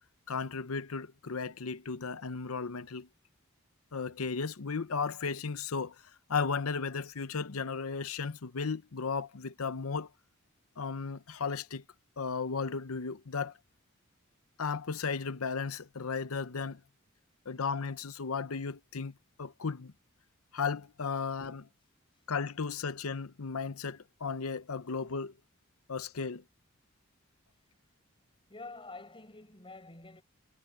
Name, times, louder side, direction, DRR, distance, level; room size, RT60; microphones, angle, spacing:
voice 1, 0.3-3.1 3.9-5.9 6.3-10.1 10.8-11.8 12.2-13.5 14.6-16.8 17.5-19.1 19.4-19.9 20.5-21.7 22.3-25.3 25.9-26.4, left 5 dB, 85° left, 0.8 m, -35 dB
voice 2, 28.5-30.2, left 3 dB, 25° left, 5.7 m, -47 dB
head